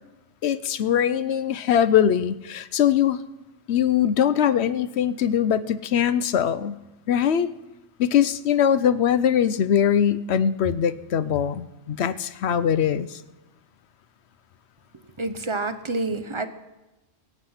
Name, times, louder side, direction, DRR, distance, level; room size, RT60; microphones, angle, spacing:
voice 1, 0.4-3.2 3.7-6.8 7.1-7.5 8.0-13.1, left 9 dB, 65° left, 14 dB, 0.9 m, -22 dB
voice 2, 15.2-16.5, right 2 dB, 30° right, 10 dB, 0.7 m, -28 dB
23.0 x 8.2 x 5.7 m, 1.0 s
omnidirectional pair, 1.3 m